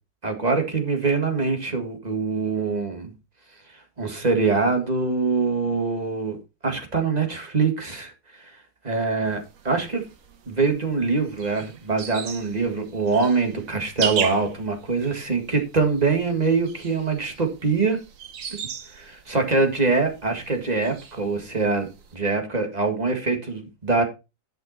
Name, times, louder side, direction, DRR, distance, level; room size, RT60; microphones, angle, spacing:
voice 1, 0.2-3.1 4.0-6.4 6.6-8.1 8.4-8.5 8.8-10.0 10.5-18.0 18.9-21.9 22.1-24.0, right 4 dB, 25° right, 2.0 m, -24 dB
sound 1, 9.3-22.2, right 7 dB, 60° right, 1.3 m, -37 dB
11.0 x 5.8 x 4.3 m
omnidirectional pair, 1.6 m